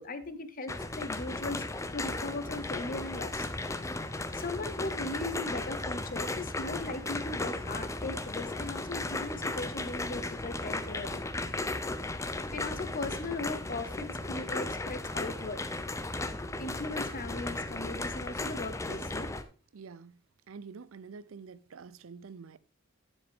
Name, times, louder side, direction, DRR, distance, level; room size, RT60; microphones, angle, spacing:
voice 1, 0.0-3.5 4.3-11.2 12.3-15.6 16.6-19.3, left 2 dB, 45° left, 1.0 m, -38 dB
sound 1, 0.7-19.4, left 2 dB, 15° left, 0.6 m, -36 dB
voice 2, 19.7-20.2 20.5-22.6, right 5 dB, 75° right, 0.5 m, -47 dB
10.5 x 7.2 x 3.6 m
head